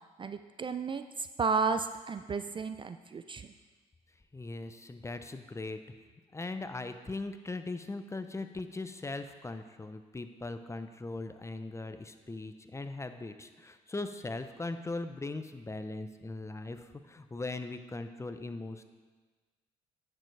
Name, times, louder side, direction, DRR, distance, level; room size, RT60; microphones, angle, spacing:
voice 1, 0.2-3.5, right 5 dB, 30° right, 10 dB, 0.4 m, -33 dB
voice 2, 4.3-5.8 6.3-18.8, left 2 dB, 20° left, 9 dB, 0.6 m, -39 dB
10.0 x 6.7 x 3.3 m, 1.3 s
supercardioid pair, 65°, 16 cm